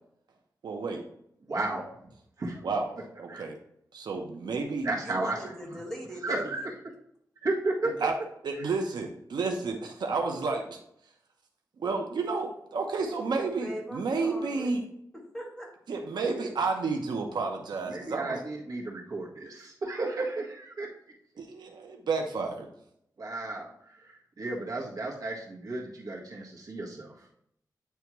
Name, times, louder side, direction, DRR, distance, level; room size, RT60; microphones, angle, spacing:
voice 1, 0.6-1.0 2.6-2.9 3.2-3.6 3.9-4.9 8.0-8.2 8.4-10.8 11.8-14.8 15.9-18.4 21.4-22.7, right 4 dB, 85° right, 3 dB, 0.8 m, -31 dB
voice 2, 1.5-1.8 2.4-2.6 3.3-3.4 4.8-5.4 6.2-6.7 7.4-7.9 8.6-8.7 17.8-20.9 23.2-27.1, right 2 dB, 55° right, -3 dB, 1.6 m, -33 dB
voice 3, 5.0-6.7 13.4-14.8 15.3-15.7, equal, 5° left, -3 dB, 1.8 m, -40 dB
9.6 x 3.4 x 3.0 m, 0.73 s
wide cardioid pair, 125°, 7 cm